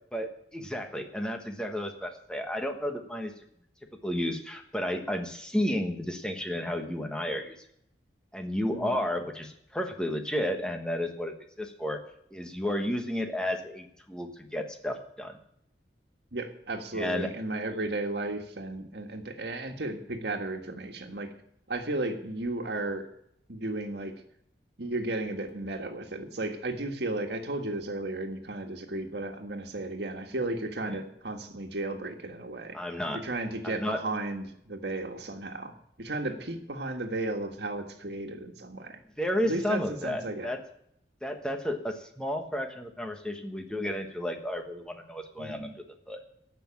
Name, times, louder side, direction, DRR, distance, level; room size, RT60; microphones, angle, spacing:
voice 1, 0.1-3.3 4.0-7.5 8.3-12.0 12.3-15.3 16.9-17.3 30.9-31.0 32.7-33.2 33.6-34.0 39.2-40.6 41.2-45.8 46.1-46.2, left 1 dB, 5° left, 4 dB, 1.3 m, -32 dB
voice 2, 16.3-21.3 21.7-23.0 23.5-24.1 24.8-32.8 33.1-39.0 39.4-40.5 45.4-45.6, right 2 dB, 75° right, 4 dB, 1.6 m, -34 dB
14.5 x 6.0 x 8.8 m, 0.72 s
head